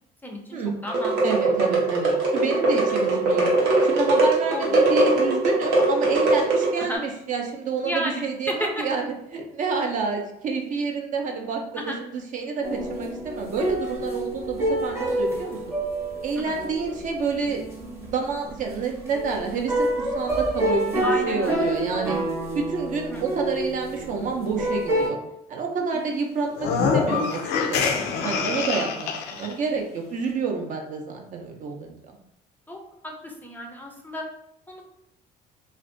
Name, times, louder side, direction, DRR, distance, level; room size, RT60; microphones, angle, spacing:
voice 1, 0.2-1.5 2.6-2.7 4.5-4.8 6.8-7.0 7.8-8.8 11.8-12.0 16.4-16.6 21.0-21.7 21.9-22.3 23.1-23.2 28.8-29.0 32.7-32.8 33.0-34.3 34.7-34.8, equal, 10° left, 0 dB, 0.4 m, -33 dB
sound 1, 0.9-6.9, right 2 dB, 85° right, 0.7 m, -21 dB
voice 2, 1.2-3.5 3.8-15.8 16.2-17.6 18.0-22.2 22.5-25.2 25.5-32.0, right 4 dB, 50° right, 2 dB, 0.5 m, -29 dB
sound 2, 12.6-25.1, right 1 dB, 15° right, 0.7 m, -28 dB
sound 3, 26.5-29.5, left 5 dB, 85° left, 0.4 m, -25 dB
2.5 x 2.1 x 2.5 m, 0.76 s
cardioid pair, 110°, 17 cm